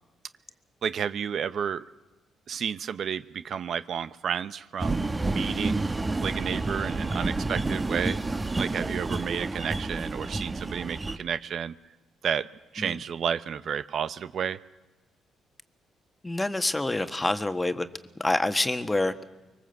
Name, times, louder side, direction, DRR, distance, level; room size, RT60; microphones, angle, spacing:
voice 1, 0.8-1.8 2.5-5.9 6.2-8.2 8.6-11.7 12.2-12.5 12.7-14.6, right 8 dB, 60° right, 14 dB, 0.8 m, -31 dB
sound 1, 4.8-11.2, right 2 dB, 20° right, 1.2 m, -29 dB
voice 2, 16.2-17.9 18.2-19.1, left 2 dB, 15° left, 9 dB, 1.5 m, -26 dB
25.0 x 23.0 x 8.0 m, 1.2 s
cardioid pair, 90°, 0 cm